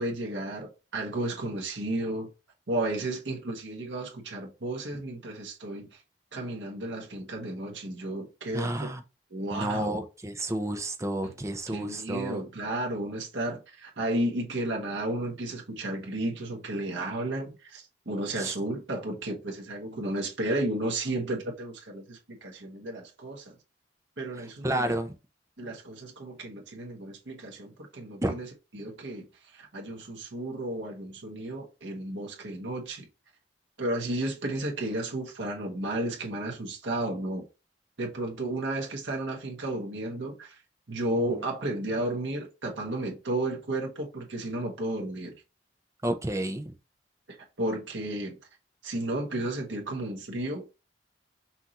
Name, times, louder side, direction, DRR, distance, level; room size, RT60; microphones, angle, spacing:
voice 1, 0.0-2.3 2.7-5.9 6.3-8.9 9.3-9.9 11.2-11.3 11.7-23.6 24.2-25.0 25.6-28.5 28.7-33.1 33.8-37.5 38.0-40.6 40.9-45.3 47.6-48.4 48.8-50.7, right 1 dB, 80° right, 1.3 m, -33 dB
voice 2, 8.5-9.0 9.5-12.4 18.4-18.5 24.6-25.1 28.2-28.4 41.1-41.4 46.0-46.7, right 1 dB, 15° right, 0.6 m, -31 dB
5.8 x 2.7 x 2.9 m
head